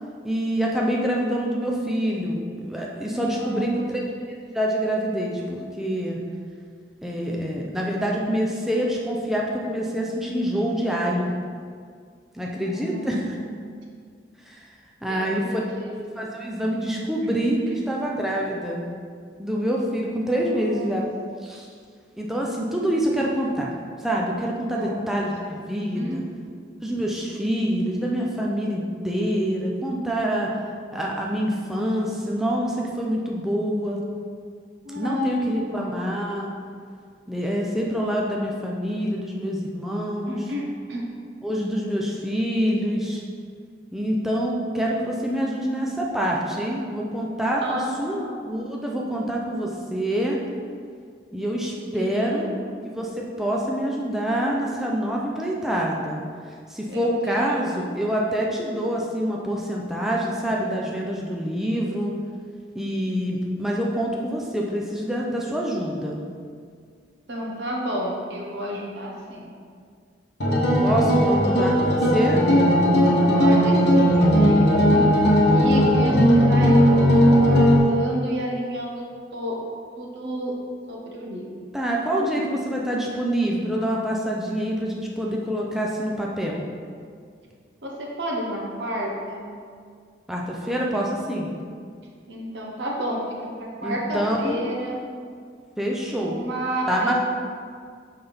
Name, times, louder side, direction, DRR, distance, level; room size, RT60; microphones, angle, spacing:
voice 1, 0.2-4.0 4.5-6.2 7.0-11.3 12.3-13.4 14.5-14.7 15.0-15.6 16.2-18.8 19.4-21.1 21.4-21.7 22.2-23.7 24.0-26.2 26.8-30.5 30.9-34.0 35.0-36.5 37.3-40.5 41.4-43.2 43.9-50.4 51.3-52.5 52.8-56.2 56.7-62.1 62.7-66.2 70.8-72.4 81.7-86.7 90.3-91.5 93.8-94.7 95.8-96.4 96.9-97.2, equal, ahead, -3 dB, 0.5 m, -26 dB
voice 2, 3.1-3.9 12.6-13.5 15.0-15.9 17.2-17.3 20.4-21.0 24.7-25.0 25.9-26.6 34.8-35.9 40.3-41.0 47.6-48.4 51.9-52.6 56.9-57.8 67.3-69.5 73.3-76.8 77.3-79.0 79.3-79.6 80.0-80.5 80.9-81.5 87.8-89.5 92.3-95.0 96.3-97.2, equal, 75° right, -2 dB, 1.1 m, -31 dB
sound 1, 70.4-77.8, equal, 70° left, 1.0 m, -17 dB
5.7 x 5.6 x 3.5 m, 2.1 s
head